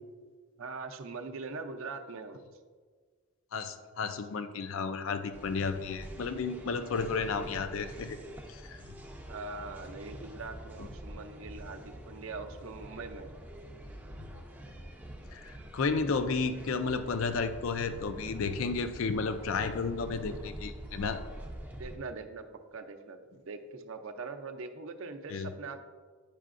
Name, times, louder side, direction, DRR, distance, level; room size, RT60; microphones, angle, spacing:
voice 1, 0.6-2.4 9.3-13.3 21.8-22.4 22.7-25.8, right 3 dB, 60° right, 6 dB, 0.5 m, -42 dB
voice 2, 3.5-8.2 8.5-8.8 10.8-10.9 14.2-14.3 15.3-21.2 25.3-25.5, left 4 dB, 60° left, 9 dB, 0.4 m, -32 dB
sound 1, 5.3-22.0, right 1 dB, 5° right, 0.4 m, -46 dB
9.1 x 5.5 x 2.5 m, 1.5 s
head